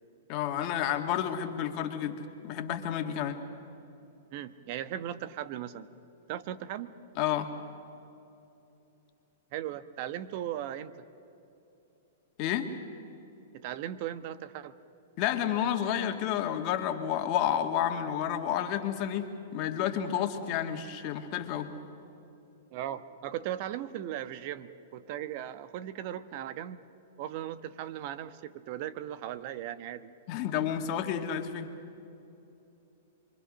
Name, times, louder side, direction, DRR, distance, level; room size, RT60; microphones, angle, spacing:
voice 1, 0.3-3.4 7.2-7.5 12.4-12.7 15.2-21.7 30.3-31.7, left 10 dB, 45° left, 5 dB, 2.1 m, -30 dB
voice 2, 4.3-5.9 6.3-6.9 9.5-10.9 13.5-14.7 22.7-26.8 27.2-30.1, right 11 dB, 50° right, 13 dB, 1.1 m, -37 dB
26.5 x 23.5 x 6.4 m, 2.9 s
hypercardioid pair, 125°, 0 cm